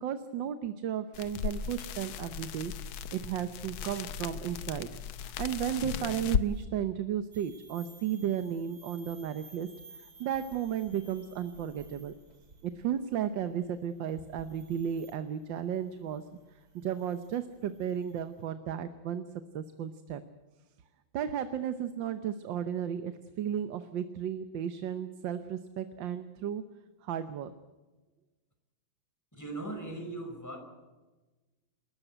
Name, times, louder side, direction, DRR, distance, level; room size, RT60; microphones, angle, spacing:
voice 1, 0.0-2.7 3.1-4.9 5.2-9.7 9.9-12.1 12.6-16.3 16.8-20.2 21.1-26.6 27.0-27.5, right 9 dB, 70° right, 10 dB, 1.6 m, -34 dB
sound 1, 1.1-6.5, left 8 dB, 80° left, 1.7 m, -36 dB
sound 2, 7.3-18.5, right 3 dB, 50° right, 3.1 m, -57 dB
voice 2, 29.3-30.6, right 2 dB, 10° left, 3 dB, 5.3 m, -39 dB
28.0 x 13.0 x 9.1 m, 1.2 s
omnidirectional pair, 2.2 m